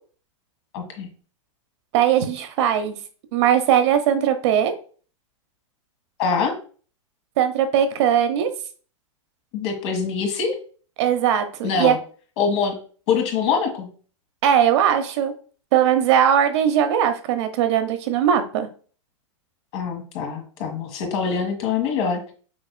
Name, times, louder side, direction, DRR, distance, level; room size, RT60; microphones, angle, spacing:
voice 1, 0.7-1.1 6.2-6.6 9.5-10.6 11.6-12.0 12.4-12.7 13.1-13.9 19.7-22.3, left 6 dB, 55° left, 4 dB, 1.7 m, -24 dB
voice 2, 1.9-3.0 3.3-4.7 7.4-8.5 11.0-11.9 14.4-15.3 15.7-18.7, right 9 dB, 60° right, 9 dB, 0.9 m, -19 dB
5.8 x 4.1 x 2.2 m, 0.41 s
hypercardioid pair, 125°, 17 cm